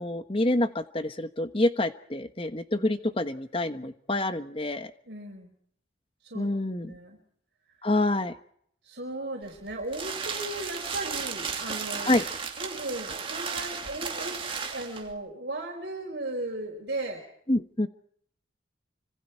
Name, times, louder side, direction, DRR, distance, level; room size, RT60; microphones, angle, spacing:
voice 1, 0.0-4.9 6.3-6.9 7.8-8.3 12.0-12.2 17.5-17.9, left 1 dB, 30° left, 10 dB, 1.2 m, -27 dB
voice 2, 5.1-5.5 6.3-6.5 6.8-7.2 8.8-12.1 12.5-14.4 14.7-17.2, right 2 dB, 60° right, 0 dB, 5.0 m, -36 dB
sound 1, 9.4-15.1, right 5 dB, 30° right, 2.7 m, -34 dB
30.0 x 26.0 x 4.7 m, 0.67 s
head